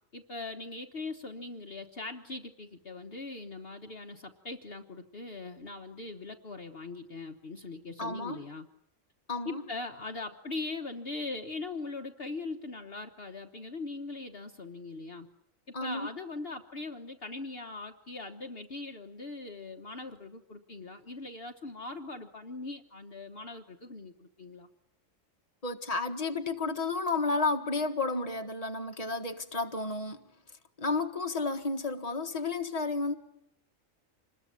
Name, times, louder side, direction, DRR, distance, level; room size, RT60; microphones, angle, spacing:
voice 1, 0.1-8.7 9.4-15.3 15.7-24.7, left 3 dB, 50° left, 5 dB, 1.5 m, -41 dB
voice 2, 8.0-8.4 9.3-9.6 15.7-16.1 25.6-30.2 30.8-33.2, left 3 dB, 30° left, 5 dB, 1.7 m, -32 dB
27.0 x 21.0 x 9.2 m, 0.76 s
omnidirectional pair, 1.4 m